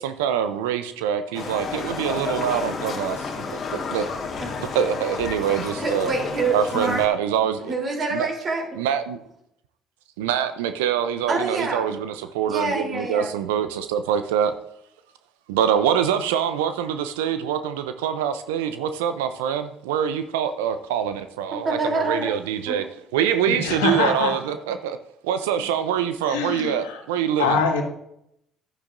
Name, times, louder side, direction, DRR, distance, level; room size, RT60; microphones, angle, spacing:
voice 1, 0.0-3.4 3.9-4.0 4.7-6.1 6.5-7.7 8.1-8.3 8.8-9.2 10.2-14.5 15.5-22.8 23.1-25.0 25.2-27.6, right 9 dB, 80° right, 10 dB, 0.5 m, -24 dB
Livestock farm animals working animals, 1.3-7.1, left 4 dB, 45° left, 1.6 m, -31 dB
voice 2, 5.8-7.0 7.6-8.8 11.3-11.9 12.4-13.3 21.6-22.3 22.7-22.8, right 3 dB, 45° right, 0 dB, 3.2 m, -26 dB
voice 3, 23.5-24.3 26.3-27.0 27.4-27.8, left 5 dB, 80° left, 2 dB, 1.6 m, -24 dB
11.0 x 9.7 x 2.5 m, 0.76 s
hypercardioid pair, 60°, 0 cm